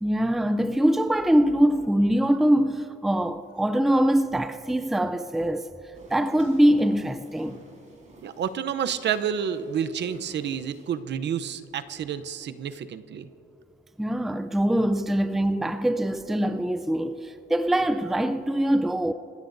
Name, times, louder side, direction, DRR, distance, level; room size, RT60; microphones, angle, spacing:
voice 1, 0.0-5.7 6.1-7.6 14.0-19.1, right 1 dB, ahead, 0.4 m, -23 dB
sound 1, 5.9-11.0, right 2 dB, 40° right, 4.6 m, -51 dB
voice 2, 8.2-13.3, right 8 dB, 60° right, 0.8 m, -29 dB
27.5 x 15.5 x 2.7 m
cardioid pair, 90°, 20 cm